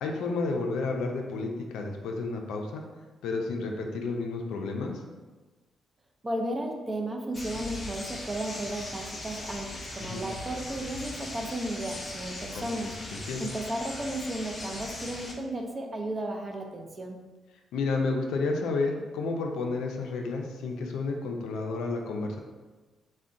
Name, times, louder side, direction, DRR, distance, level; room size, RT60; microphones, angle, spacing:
voice 1, 0.0-2.8 3.2-5.0 10.0-10.2 12.5-12.6 13.1-13.5 17.7-22.4, left 3 dB, 90° left, 2 dB, 0.4 m, -31 dB
voice 2, 6.2-12.9 13.4-17.2, right 1 dB, 25° right, 2 dB, 0.4 m, -34 dB
sound 1, 7.3-15.3, left 2 dB, 30° left, 0.5 m, -39 dB
3.5 x 2.1 x 2.5 m, 1.3 s
cardioid pair, 80°, 0 cm